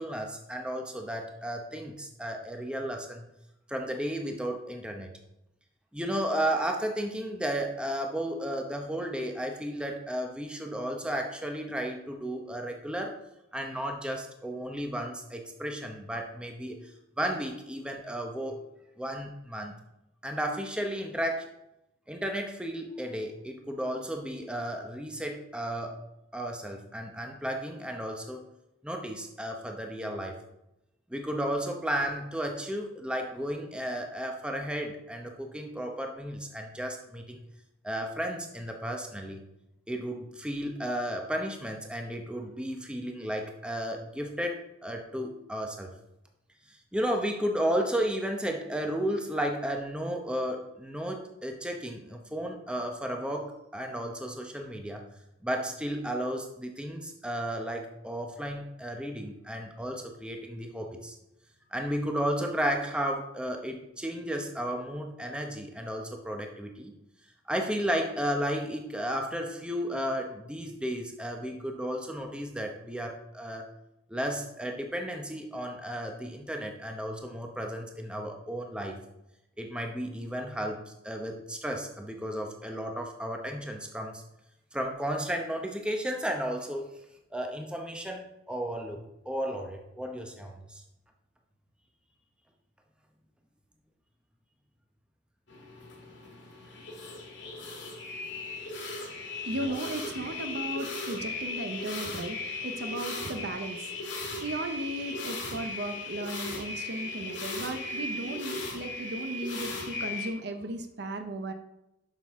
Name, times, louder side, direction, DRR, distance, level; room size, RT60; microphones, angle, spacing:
voice 1, 0.0-3.3 3.7-5.1 5.9-13.2 13.5-16.9 17.2-18.6 19.0-19.7 20.2-21.5 22.1-26.0 26.3-28.4 28.8-30.3 31.1-37.4 37.8-39.4 39.9-45.9 46.7-55.0 55.4-61.2 61.7-66.9 67.5-73.7 74.1-79.0 79.6-84.2 84.7-86.9 87.3-89.0 89.3-90.8 99.6-99.7, equal, 5° right, 2 dB, 0.8 m, -33 dB
sound 1, 95.5-110.3, left 2 dB, 70° left, 1.9 m, -37 dB
voice 2, 99.4-111.5, right 1 dB, 60° right, 7 dB, 0.7 m, -36 dB
7.7 x 6.3 x 3.6 m, 0.89 s
head